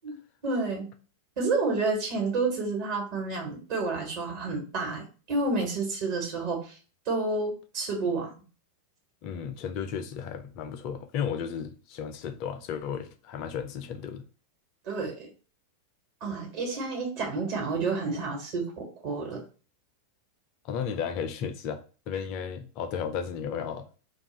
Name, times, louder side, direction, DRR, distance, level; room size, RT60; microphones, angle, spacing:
voice 1, 0.4-0.9 1.4-6.7 7.1-8.3 14.8-15.3 16.2-19.4, right 3 dB, 45° right, 1.3 m, -30 dB
voice 2, 9.2-14.2 20.6-23.9, left 7 dB, 40° left, 0.4 m, -34 dB
2.3 x 2.3 x 3.9 m
figure-of-eight pair, 90°, 0 cm